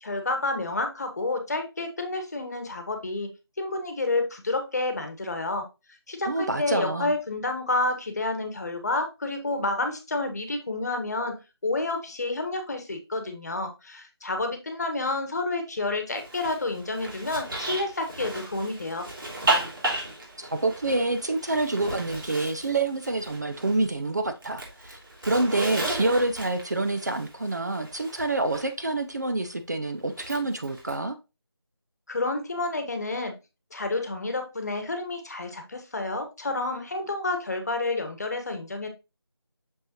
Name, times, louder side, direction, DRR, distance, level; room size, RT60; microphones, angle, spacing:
voice 1, 0.0-5.7 6.1-19.1 32.1-33.4 33.7-38.9, left 2 dB, 40° left, 1.2 m, -29 dB
voice 2, 6.2-7.1 20.4-31.2, right 2 dB, 40° right, 0.5 m, -27 dB
Zipper (clothing), 16.1-24.0 24.2-28.7 30.1-30.9, right 2 dB, 55° right, 2.9 m, -34 dB
6.4 x 5.3 x 2.8 m
figure-of-eight pair, 165°, 14 cm